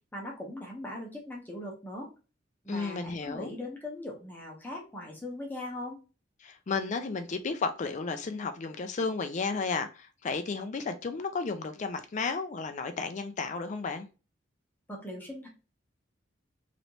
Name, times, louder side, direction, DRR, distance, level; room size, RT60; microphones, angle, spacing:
voice 1, 0.1-2.1 2.6-6.0 14.9-15.5, left 1 dB, 10° left, 1.0 m, -40 dB
voice 2, 2.7-3.5 6.4-14.1, left 4 dB, 40° left, 0.4 m, -33 dB
3.1 x 3.0 x 2.6 m
head